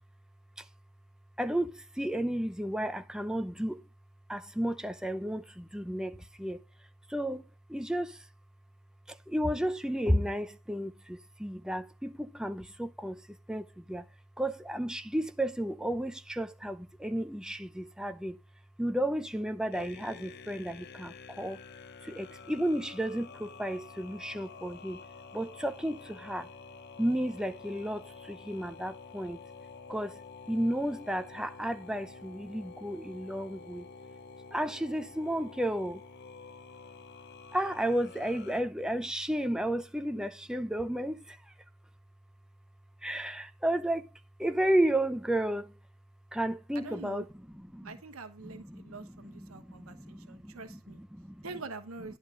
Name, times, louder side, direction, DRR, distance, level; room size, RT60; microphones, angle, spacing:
voice 1, 1.4-3.8 4.3-6.6 7.1-8.2 9.1-14.1 14.4-18.4 18.8-21.6 22.0-25.0 25.3-26.5 27.0-29.4 29.9-30.2 30.5-33.9 34.5-36.0 37.5-41.4 43.0-44.1 44.4-45.7 46.3-47.3 47.5-48.0 48.4-51.5, right 1 dB, 5° right, 0.6 m, -33 dB
sound 1, 19.7-38.6, left 5 dB, 50° left, 0.7 m, -49 dB
voice 2, 46.7-47.2 47.8-51.0 51.4-52.2, right 3 dB, 90° right, 1.1 m, -45 dB
11.0 x 4.6 x 5.3 m
head